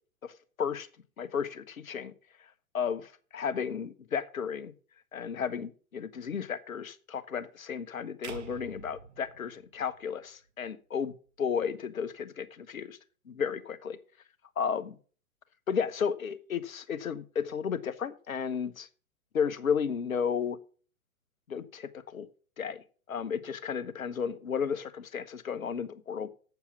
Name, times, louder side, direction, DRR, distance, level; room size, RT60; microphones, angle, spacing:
voice 1, 1.2-2.1 2.7-4.7 5.1-13.0 13.3-14.0 14.6-15.0 15.7-18.9 19.3-20.6 21.5-22.3 22.6-26.3, left 7 dB, 70° left, 12 dB, 1.1 m, -33 dB
sound 1, 8.2-10.5, right 6 dB, 50° right, 1.3 m, -47 dB
8.0 x 7.1 x 7.1 m, 0.41 s
figure-of-eight pair, 115°, 43 cm